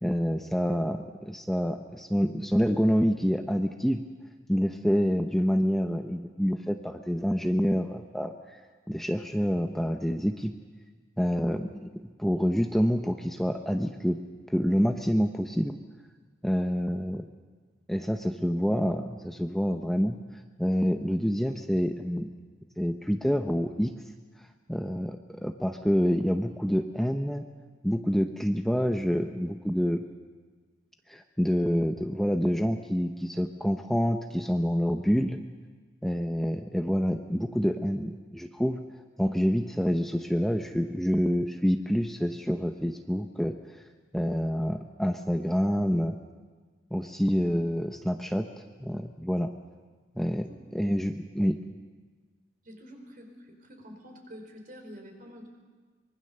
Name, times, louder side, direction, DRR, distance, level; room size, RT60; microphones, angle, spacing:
voice 1, 0.0-4.0 4.5-8.6 8.9-10.5 11.2-14.2 14.5-15.8 16.4-17.2 17.9-20.2 20.6-22.3 22.8-23.9 24.7-27.4 27.8-30.0 31.1-35.4 36.0-38.8 39.2-43.5 44.1-46.2 46.9-48.5 48.8-49.5 50.2-51.6, equal, ahead, 4 dB, 0.8 m, -27 dB
voice 2, 52.6-55.5, equal, 50° right, 4 dB, 4.6 m, -47 dB
24.5 x 22.5 x 6.8 m, 1.4 s
head